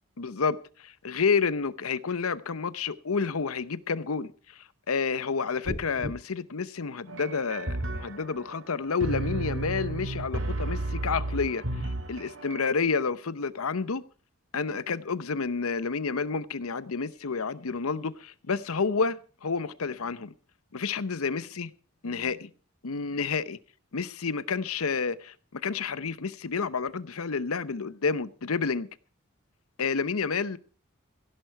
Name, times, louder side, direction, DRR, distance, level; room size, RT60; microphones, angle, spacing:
voice 1, 0.2-14.0 14.5-20.3 20.7-21.7 22.0-22.5 22.8-23.6 23.9-28.9 29.8-30.6, left 5 dB, 85° left, 0.8 m, -30 dB
sound 1, 5.6-6.1, left 1 dB, 45° right, 7.6 m, -34 dB
sound 2, 7.1-12.7, right 2 dB, 60° right, 1.9 m, -33 dB
16.0 x 11.0 x 4.6 m
head